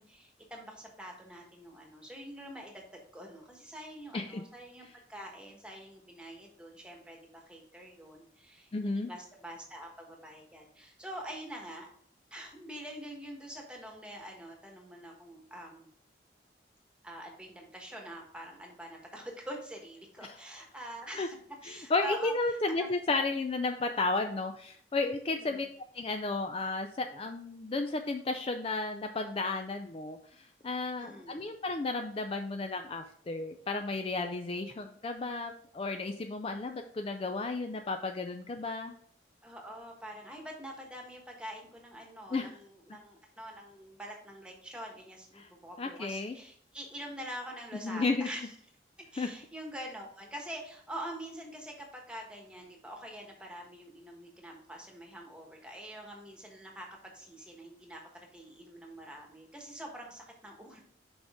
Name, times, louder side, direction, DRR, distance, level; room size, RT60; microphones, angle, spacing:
voice 1, 0.0-11.9 12.3-15.9 17.0-21.4 21.6-22.9 25.4-25.7 31.0-31.5 39.4-48.5 49.1-60.8, equal, 5° right, 1 dB, 1.3 m, -45 dB
voice 2, 8.7-9.1 21.1-21.3 21.6-25.7 25.9-38.9 42.3-42.5 45.4-45.5 45.8-46.4 47.8-48.3 49.2-49.3, left 3 dB, 30° left, 5 dB, 0.4 m, -33 dB
6.1 x 5.1 x 3.6 m, 0.62 s
head